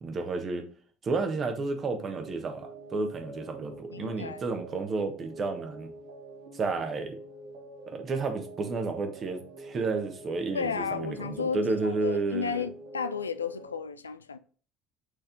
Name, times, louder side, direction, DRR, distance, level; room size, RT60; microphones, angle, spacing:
voice 1, 0.0-0.6 1.0-5.9 6.5-7.2 7.9-12.7, right 3 dB, 35° right, 1.4 m, -31 dB
sound 1, 2.1-13.8, right 2 dB, 60° right, 1.6 m, -46 dB
voice 2, 3.9-4.4 10.5-14.4, left 6 dB, 80° left, 0.3 m, -33 dB
6.5 x 4.2 x 3.6 m
figure-of-eight pair, 60°, 0 cm